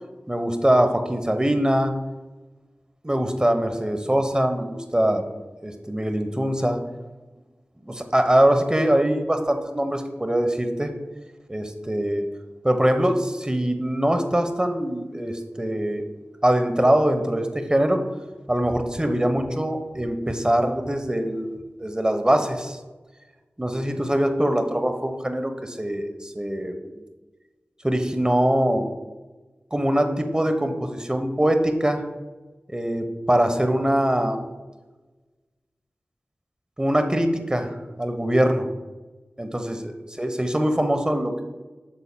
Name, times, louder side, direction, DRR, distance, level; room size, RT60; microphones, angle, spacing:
voice 1, 0.3-1.9 3.0-5.3 5.6-6.8 7.9-10.9 11.5-12.3 12.6-16.0 16.4-18.0 18.5-22.8 23.6-27.0 27.8-28.9 29.7-32.0 32.7-34.5 36.8-38.7 39.4-39.9 40.2-41.4, right 1 dB, 20° right, 6 dB, 0.9 m, -23 dB
8.6 x 6.7 x 2.2 m, 1.2 s
cardioid pair, 45°, 4 cm